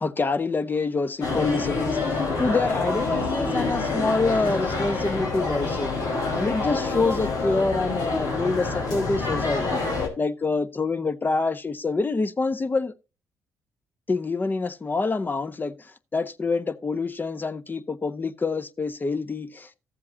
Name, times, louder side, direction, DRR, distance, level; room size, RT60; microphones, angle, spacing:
voice 1, 0.0-6.0 6.3-9.8 10.2-12.9 14.1-19.7, left 3 dB, 30° left, 1.2 m, -26 dB
sound 1, 1.2-10.1, left 3 dB, 75° left, 4.2 m, -27 dB
15.0 x 7.5 x 2.8 m
supercardioid pair, 60°, 7 cm